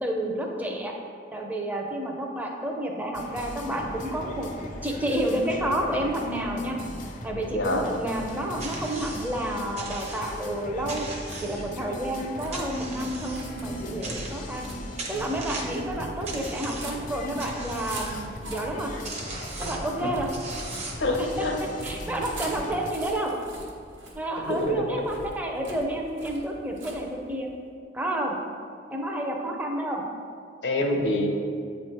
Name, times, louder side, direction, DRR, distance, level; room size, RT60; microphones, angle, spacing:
voice 1, 0.0-0.9 1.3-4.5 4.8-6.8 7.2-11.1 11.4-14.7 15.1-18.9 19.6-20.3 21.2-21.4 21.8-23.3 24.2-27.5 27.9-28.4 28.9-30.0, right 1 dB, 10° right, 1 dB, 0.6 m, -30 dB
sound 1, 3.1-22.9, left 1 dB, 45° left, 0.6 m, -39 dB
voice 2, 7.5-7.8 20.0-20.1 21.0-21.5 24.5-25.0 30.6-31.3, left 2 dB, 75° left, 2 dB, 0.8 m, -26 dB
sound 2, 8.6-9.3 9.8-10.5 10.9-12.0 12.5-13.5 14.0-14.7 15.0-15.9 16.3-17.0 17.4-18.1 18.7-18.8 19.0-19.9 20.3-21.2, right 3 dB, 35° right, 0.9 m, -39 dB
sound 3, 11.1-27.6, right 1 dB, 70° right, 1.2 m, -44 dB
8.2 x 3.1 x 4.4 m, 2.4 s
head